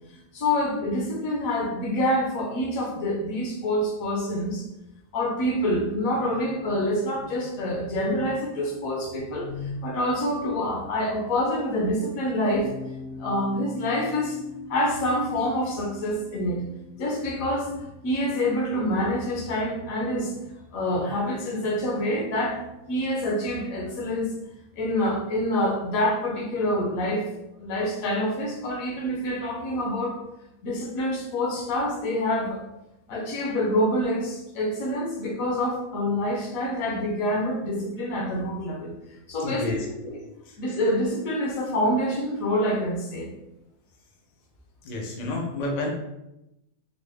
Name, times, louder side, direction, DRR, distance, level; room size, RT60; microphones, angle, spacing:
voice 1, 0.3-4.7 5.1-12.7 13.2-14.4 14.7-16.6 17.0-17.7 18.0-20.4 20.7-22.6 22.9-24.3 24.8-27.2 27.6-30.1 30.6-32.6 33.1-38.9 39.3-39.8 40.0-40.1 40.6-43.3, left 1 dB, 65° left, 0 dB, 1.1 m, -26 dB
sound 1, 12.6-18.8, left 2 dB, 35° left, 0.5 m, -43 dB
voice 2, 39.4-39.9 40.4-40.6 44.8-45.9, left 2 dB, 85° left, -1 dB, 0.3 m, -30 dB
3.9 x 2.0 x 3.3 m, 0.90 s
omnidirectional pair, 1.7 m